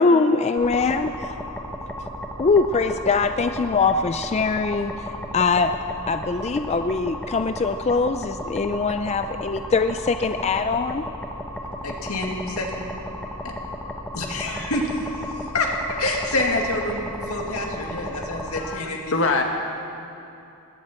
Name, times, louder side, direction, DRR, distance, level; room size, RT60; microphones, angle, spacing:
voice 1, 0.0-1.4 2.4-5.7 6.1-11.1, left 4 dB, 30° left, 8 dB, 0.4 m, -22 dB
sound 1, 0.6-18.7, left 1 dB, 5° left, 0.9 m, -34 dB
voice 2, 11.8-12.8 13.4-13.5 14.1-19.1, left 2 dB, 85° left, 1 dB, 2.2 m, -27 dB
voice 3, 18.6-19.4, left 3 dB, 60° left, 3 dB, 1.1 m, -24 dB
20.5 x 15.5 x 4.3 m, 2.7 s
head